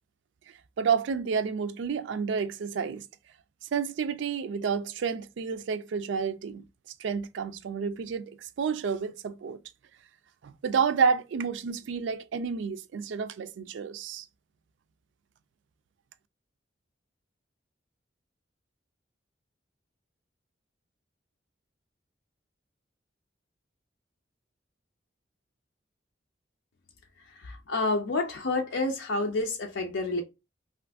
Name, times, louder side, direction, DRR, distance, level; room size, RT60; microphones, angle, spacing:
voice 1, 0.8-3.0 3.7-6.6 7.0-9.6 10.4-14.2, right 6 dB, 75° right, 0.3 m, -30 dB
voice 2, 27.4-30.2, left 2 dB, 80° left, 0.5 m, -29 dB
2.5 x 2.4 x 3.3 m
head